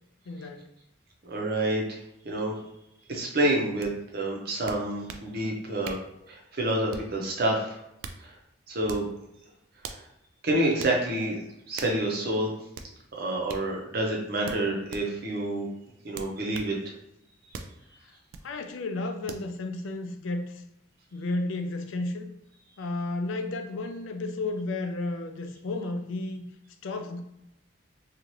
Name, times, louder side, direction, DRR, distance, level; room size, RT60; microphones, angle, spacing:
voice 1, 0.3-0.6 18.0-18.1 18.4-20.6 21.1-22.3 22.8-26.4 26.8-27.2, left 2 dB, 75° left, 7 dB, 0.4 m, -32 dB
voice 2, 1.2-1.8 2.2-2.5 3.1-6.0 6.3-7.8 8.2-8.3 8.7-9.1 9.9-10.0 10.4-11.4 11.7-12.5 13.2-15.7 16.0-16.8, right 1 dB, 50° right, -1 dB, 0.7 m, -28 dB
sound 1, 3.8-3.9 4.7-5.3 5.8-6.1 6.9-7.2 7.8-8.2 8.8-9.1 9.8-10.1 10.8-11.0 11.8-12.0 12.7-12.9 13.5-13.7 14.4-15.1 16.1-16.7 17.5-17.8 18.3-18.5 19.3-19.5, right 5 dB, 80° right, 0.3 m, -41 dB
2.7 x 2.4 x 3.1 m, 0.82 s
head